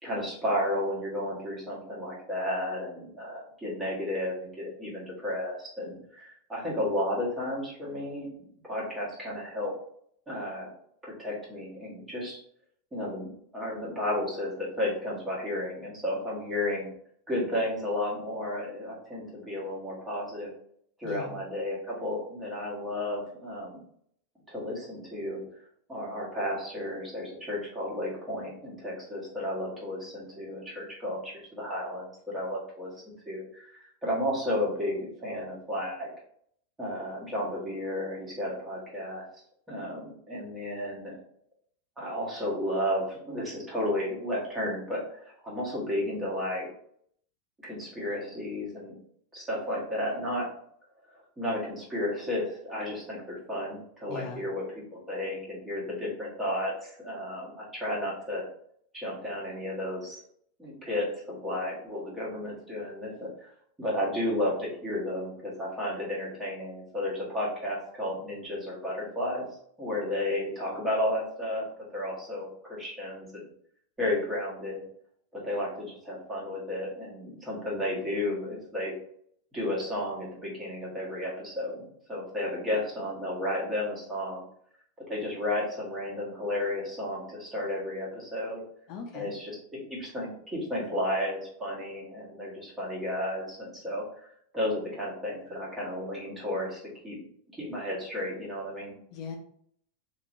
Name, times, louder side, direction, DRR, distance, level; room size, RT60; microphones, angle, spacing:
voice 1, 0.0-8.3 8.6-9.7 10.3-10.7 11.0-12.4 12.9-13.3 13.5-16.9 17.3-20.5 21.0-23.8 24.5-25.4 25.9-32.9 33.3-36.1 36.8-39.2 39.7-41.1 42.0-46.7 47.6-48.9 49.3-50.5 51.4-58.5 58.9-60.2 60.6-63.5 63.8-69.4 69.8-73.4 74.0-74.8 75.3-78.9 79.5-84.4 85.1-88.6 89.1-94.0 94.5-97.2 97.6-99.0, left 1 dB, 10° right, -5 dB, 1.3 m, -33 dB
voice 2, 21.0-21.4 54.1-54.4 88.9-89.3 99.1-99.4, left 6 dB, 45° left, 3 dB, 0.5 m, -39 dB
3.0 x 2.9 x 2.6 m, 0.65 s
supercardioid pair, 140°, 0 cm